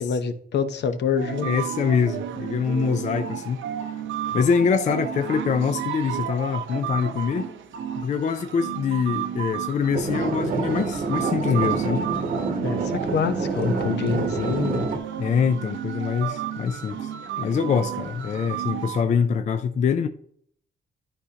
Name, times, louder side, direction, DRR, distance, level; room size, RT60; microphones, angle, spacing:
voice 1, 0.0-1.5 4.3-4.4 12.5-15.0, left 6 dB, 60° left, 0.8 m, -26 dB
sound 1, 1.2-19.0, right 9 dB, 80° right, 0.7 m, -32 dB
voice 2, 1.4-3.6 4.3-7.5 7.9-12.0 15.2-17.1 17.4-20.1, left 6 dB, 40° left, 0.4 m, -24 dB
sound 2, 9.9-15.0, right 4 dB, 45° right, 1.0 m, -27 dB
12.0 x 5.0 x 2.8 m
wide cardioid pair, 170°, 20 cm